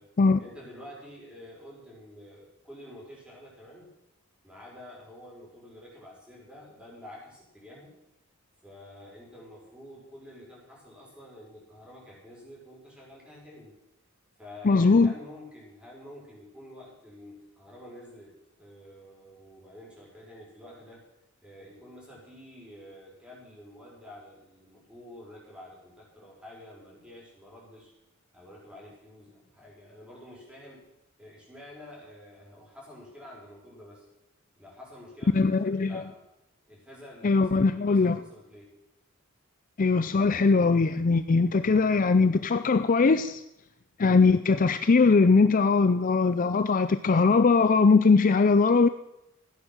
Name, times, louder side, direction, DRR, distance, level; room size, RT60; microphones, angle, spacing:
voice 1, 0.4-3.9 4.4-7.9 8.6-13.7 14.4-21.0 21.4-27.9 28.3-30.9 31.2-34.1 34.6-36.2 36.7-38.7, left 1 dB, 5° right, -5 dB, 6.2 m, -48 dB
voice 2, 14.6-15.1 35.3-36.0 37.2-38.2 39.8-43.4 44.0-48.9, left 4 dB, 40° left, 12 dB, 0.5 m, -21 dB
15.0 x 10.0 x 6.3 m, 0.86 s
head